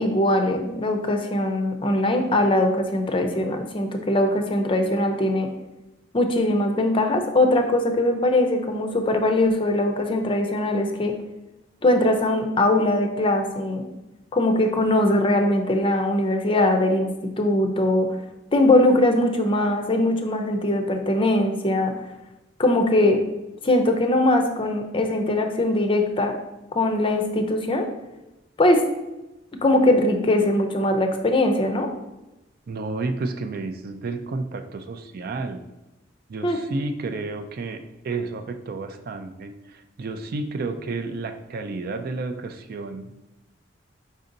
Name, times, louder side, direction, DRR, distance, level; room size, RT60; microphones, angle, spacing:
voice 1, 0.0-5.5 6.1-11.1 11.8-13.8 14.3-18.1 18.5-21.9 22.6-23.2 23.6-26.4 26.7-27.9 28.6-28.8 29.6-31.9 36.4-36.6, left 1 dB, 30° left, 4 dB, 0.5 m, -21 dB
voice 2, 32.7-35.6 36.3-43.1, right 3 dB, 50° right, 8 dB, 0.4 m, -31 dB
5.1 x 2.7 x 3.8 m, 0.99 s
head